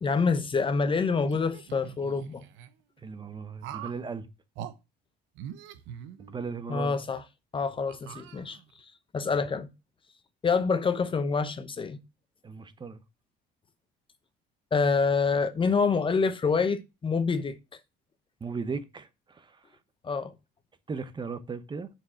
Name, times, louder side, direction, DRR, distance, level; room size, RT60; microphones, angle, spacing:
voice 1, 0.0-2.4 6.7-7.2 7.5-8.6 9.1-9.7 10.4-12.0 14.7-17.6 20.0-20.3, left 5 dB, 25° left, 0.9 m, -26 dB
sound 1, 1.2-2.7 3.6-4.0 4.5-4.7 5.3-6.6 7.1-7.2 7.9-8.8, right 10 dB, 85° right, 1.1 m, -43 dB
voice 2, 3.0-4.3 6.2-7.0 12.4-13.0 18.4-19.6 20.9-21.9, right 5 dB, 25° right, 1.0 m, -37 dB
7.2 x 6.4 x 6.4 m
cardioid pair, 120°, 19 cm